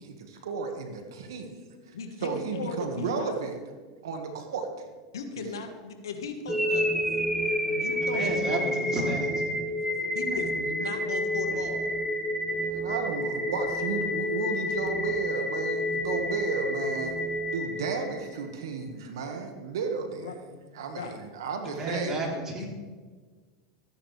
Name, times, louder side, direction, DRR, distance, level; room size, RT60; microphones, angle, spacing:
voice 1, 0.0-1.5 1.9-2.0 2.2-3.6 4.0-4.9 5.4-5.5 7.4-8.0 10.0-10.4 11.0-11.1 12.5-17.1 17.5-20.3 20.7-22.2 22.6-22.7, right 5 dB, 85° right, 5 dB, 1.6 m, -34 dB
voice 2, 1.9-3.4 5.1-6.9 7.6-9.1 10.1-11.9 20.1-21.2 21.9-22.2, left 4 dB, 90° left, 6 dB, 1.4 m, -37 dB
sound 1, 6.5-18.5, equal, ahead, 1.0 m, -29 dB
voice 3, 8.0-9.4 21.6-22.7, right 1 dB, 25° right, -1 dB, 3.2 m, -32 dB
14.5 x 9.9 x 3.3 m, 1.4 s
hypercardioid pair, 110°, 2 cm